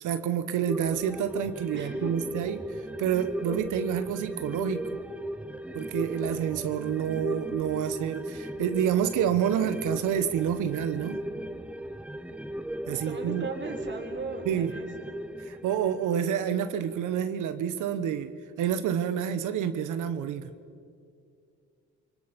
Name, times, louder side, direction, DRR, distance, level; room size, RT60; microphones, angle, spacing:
voice 1, 0.0-4.8 5.7-11.2 12.9-13.5 14.5-14.7 15.4-18.3 18.6-20.5, right 9 dB, 85° right, 10 dB, 1.2 m, -28 dB
sound 1, 0.7-17.5 17.8-17.9, right 1 dB, 5° right, 0.7 m, -37 dB
voice 2, 1.7-2.1 12.9-14.9, right 3 dB, 40° right, 2 dB, 4.3 m, -37 dB
27.5 x 24.0 x 5.3 m, 2.3 s
cardioid pair, 90°, 30 cm